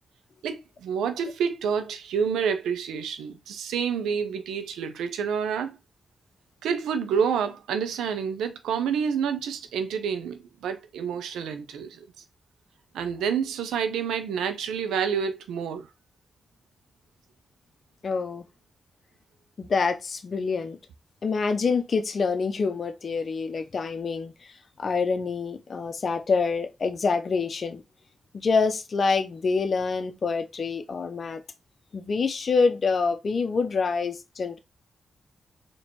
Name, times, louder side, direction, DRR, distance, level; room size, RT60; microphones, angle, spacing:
voice 1, 0.4-5.8 6.6-12.1 12.9-15.9, right 7 dB, 90° right, 0.5 m, -28 dB
voice 2, 18.0-18.4 19.6-20.8 21.2-24.5 24.8-27.8 28.3-31.4 31.9-34.6, left 4 dB, 60° left, 0.6 m, -26 dB
4.3 x 3.0 x 2.9 m
supercardioid pair, 45°, 0 cm